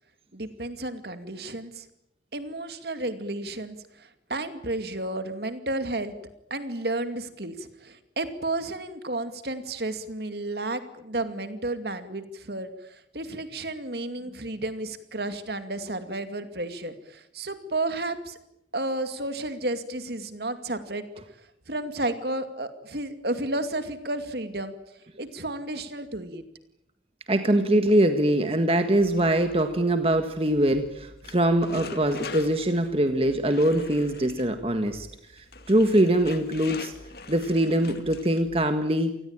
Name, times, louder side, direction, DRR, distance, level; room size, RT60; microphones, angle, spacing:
voice 1, 0.3-1.9 2.3-6.1 6.5-18.4 18.7-21.1 21.7-24.7 25.2-26.4, right 2 dB, 60° right, 9 dB, 2.5 m, -32 dB
voice 2, 27.3-35.1 35.4-36.9 37.3-39.2, right 1 dB, 30° right, 7 dB, 1.6 m, -23 dB
sound 1, 28.9-38.7, left 3 dB, 55° left, 2.4 m, -43 dB
28.5 x 19.5 x 8.9 m, 0.81 s
head